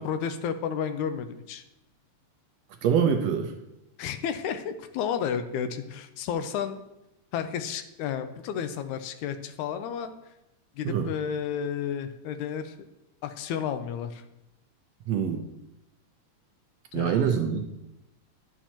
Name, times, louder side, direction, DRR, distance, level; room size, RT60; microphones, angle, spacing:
voice 1, 0.0-1.6 4.0-6.8 7.3-10.1 10.8-12.8 13.2-14.2 16.9-17.2, left 8 dB, 85° left, 9 dB, 2.0 m, -32 dB
voice 2, 2.8-3.5 10.8-11.1 15.1-15.5 16.9-17.7, right 7 dB, 75° right, 5 dB, 1.7 m, -25 dB
11.0 x 7.2 x 2.9 m, 0.91 s
omnidirectional pair, 3.4 m